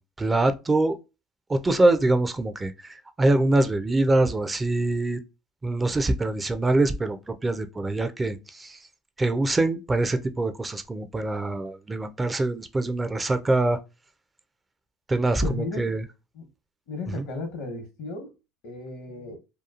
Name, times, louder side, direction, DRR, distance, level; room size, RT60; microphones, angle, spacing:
voice 1, 0.2-1.0 1.5-5.2 5.6-8.8 9.2-13.8 15.1-16.0 17.2-17.3, right 2 dB, 20° right, 0.4 m, -24 dB
voice 2, 15.4-15.8 16.3-16.5 16.9-18.3 18.6-19.4, left 3 dB, 70° left, 0.9 m, -34 dB
2.8 x 2.3 x 2.4 m
supercardioid pair, 95°, 0 cm